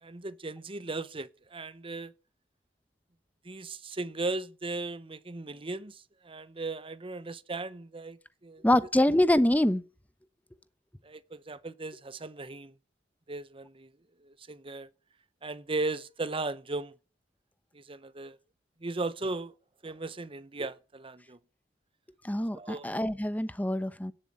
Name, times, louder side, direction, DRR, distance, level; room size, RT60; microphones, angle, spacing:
voice 1, 0.0-2.1 3.4-8.6 11.0-12.7 13.3-13.9 14.2-14.9 15.4-16.9 17.7-18.4 18.8-19.5 19.8-21.4 22.5-22.9, right 3 dB, 30° right, 0.9 m, -37 dB
voice 2, 8.6-9.8 22.2-24.1, left 1 dB, 10° left, 0.9 m, -25 dB
17.0 x 7.5 x 8.5 m
head